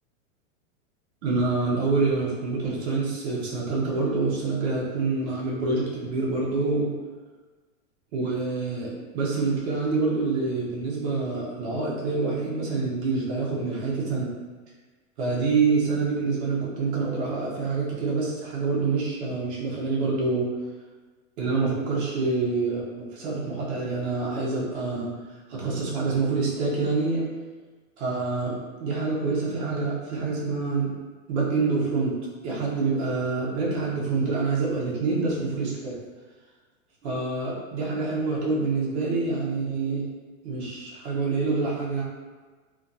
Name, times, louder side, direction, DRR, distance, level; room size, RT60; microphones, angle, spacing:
voice 1, 1.2-6.9 8.1-14.3 15.2-20.5 21.4-25.1 25.5-27.3 28.0-30.9 31.3-36.0 37.0-40.1 40.4-42.0, right 3 dB, 50° right, -4 dB, 1.1 m, -26 dB
3.5 x 2.6 x 2.7 m, 1.4 s
supercardioid pair, 150°, 42 cm